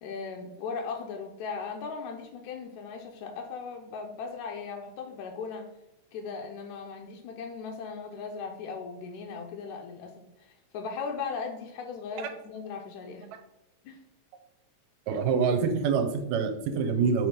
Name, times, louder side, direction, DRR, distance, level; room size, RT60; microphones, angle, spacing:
voice 1, 0.0-5.7 6.1-13.3 13.9-14.0, left 5 dB, 80° left, 2 dB, 1.9 m, -38 dB
voice 2, 15.1-17.3, right 5 dB, 80° right, 7 dB, 1.9 m, -26 dB
6.1 x 3.1 x 5.1 m, 0.91 s
omnidirectional pair, 3.4 m